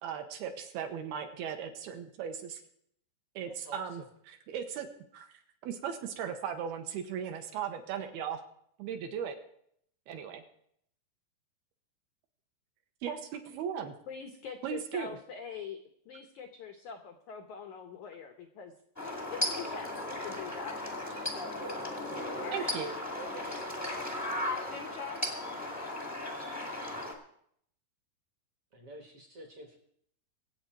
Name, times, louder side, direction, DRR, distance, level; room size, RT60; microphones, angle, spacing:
voice 1, 0.0-2.6 3.4-4.0 4.3-5.3 5.6-8.4 8.8-9.4 10.1-10.4 13.0-13.9 14.6-15.2 22.5-22.9, right 8 dB, 75° right, 5 dB, 2.8 m, -37 dB
voice 2, 3.4-4.1 19.5-19.7 20.5-20.6 21.4-21.8 22.3-22.4 23.2-23.7 28.7-29.8, right 2 dB, 50° right, 2 dB, 1.8 m, -48 dB
voice 3, 14.1-15.8 16.1-18.7 19.3-20.0 20.2-20.8 21.3-21.6 22.4-22.7 24.7-25.2, left 6 dB, 80° left, 5 dB, 1.7 m, -43 dB
sound 1, 19.0-27.1, left 1 dB, 15° left, 0.6 m, -36 dB
24.0 x 8.2 x 4.5 m, 0.69 s
omnidirectional pair, 4.8 m